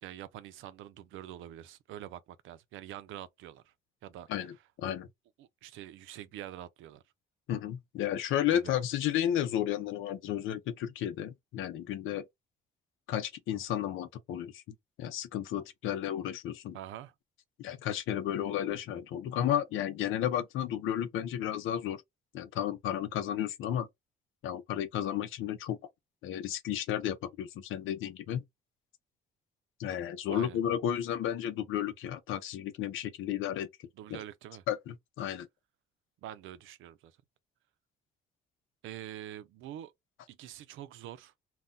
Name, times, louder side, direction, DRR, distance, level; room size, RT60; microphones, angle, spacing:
voice 1, 0.0-3.7 4.0-4.5 5.4-7.0 8.5-8.7 16.7-17.1 30.3-30.6 34.0-34.6 36.2-37.2 38.8-39.9 40.3-41.3, right 12 dB, 85° right, 0.5 m, -45 dB
voice 2, 4.3-5.1 7.5-12.2 13.1-14.6 15.0-16.8 17.6-22.0 22.3-23.9 24.4-25.8 26.2-28.4 29.8-33.7 34.7-35.5, left 10 dB, 85° left, 0.6 m, -33 dB
2.2 x 2.1 x 3.8 m
cardioid pair, 90°, 20 cm